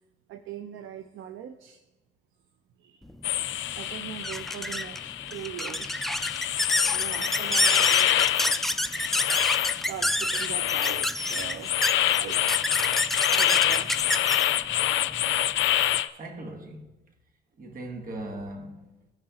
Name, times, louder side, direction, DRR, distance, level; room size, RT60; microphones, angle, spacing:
voice 1, 0.3-1.8 2.8-3.0 3.8-6.1 6.9-8.1 9.7-11.7 12.1-12.7 13.3-14.6, right 10 dB, 85° right, 0.5 m, -41 dB
sound 1, 3.1-16.0, equal, ahead, 0.3 m, -29 dB
sound 2, 3.2-16.1, left 13 dB, 75° left, 0.5 m, -26 dB
voice 2, 16.2-16.9 17.6-19.1, right 1 dB, 45° right, 1.3 m, -39 dB
17.0 x 5.6 x 2.9 m
cardioid pair, 90°, 20 cm